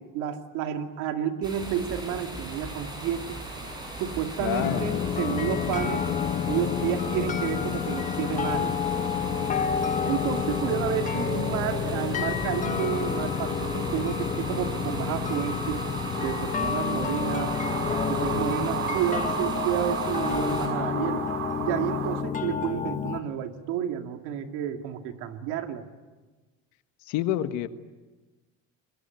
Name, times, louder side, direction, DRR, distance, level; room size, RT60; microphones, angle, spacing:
voice 1, 0.0-3.4 4.0-6.1 6.5-8.7 10.0-15.8 16.2-17.5 18.1-21.2 21.6-25.8, right 9 dB, 80° right, 5 dB, 2.5 m, -30 dB
sound 1, 1.4-20.7, equal, 15° right, 7.5 m, -39 dB
sound 2, 2.5-22.2, right 9 dB, 45° right, 2.5 m, -37 dB
voice 2, 4.4-4.9 27.1-27.7, left 12 dB, 75° left, 10 dB, 1.5 m, -27 dB
sound 3, 4.6-23.2, left 7 dB, 25° left, 1.3 m, -29 dB
27.5 x 21.5 x 9.3 m, 1.3 s
cardioid pair, 155°, 30 cm